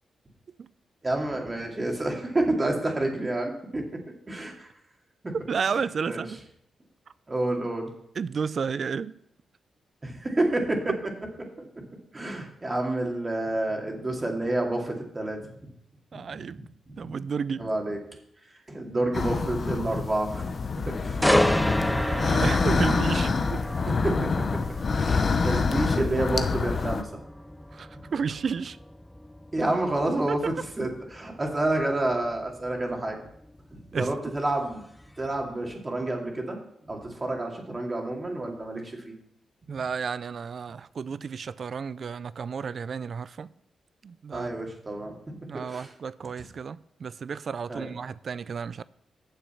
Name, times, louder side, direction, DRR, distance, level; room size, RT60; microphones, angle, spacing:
voice 1, 1.0-4.0 4.3-4.7 5.2-5.3 6.1-6.2 7.3-7.9 10.0-10.9 11.4-11.5 11.8-11.9 12.1-15.7 16.5-17.0 17.6-18.0 18.7-20.4 20.7-21.3 23.8-24.3 24.9-27.1 29.5-33.2 33.7-34.8 35.2-36.6 36.9-39.1 44.3-45.9 47.7-47.9, right 2 dB, 25° right, 2.4 m, -29 dB
voice 2, 5.5-6.4 8.2-9.2 16.1-16.6 17.0-17.7 21.9-23.6 25.4-25.6 27.7-28.8 30.3-30.4 33.9-34.2 39.7-43.5 44.0-44.5 45.3-48.8, right 6 dB, 60° right, 0.4 m, -32 dB
sound 1, 19.1-27.0, left 4 dB, 50° left, 0.9 m, -26 dB
sound 2, 21.2-35.1 35.5-35.7, left 1 dB, 5° left, 0.5 m, -31 dB
9.0 x 7.1 x 5.7 m
cardioid pair, 80°, 0 cm